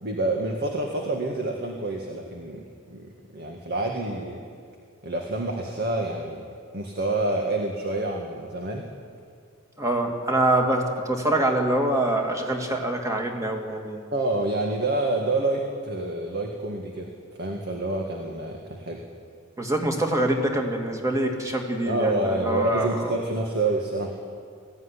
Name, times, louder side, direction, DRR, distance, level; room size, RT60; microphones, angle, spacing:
voice 1, 0.0-4.4 5.0-6.4 6.7-8.9 14.1-17.1 17.4-19.0 21.9-24.2, right 2 dB, 50° right, 2 dB, 2.0 m, -28 dB
voice 2, 9.8-14.0 19.6-23.1, right 1 dB, 15° right, 2 dB, 2.5 m, -25 dB
21.0 x 16.0 x 10.0 m, 2.2 s
head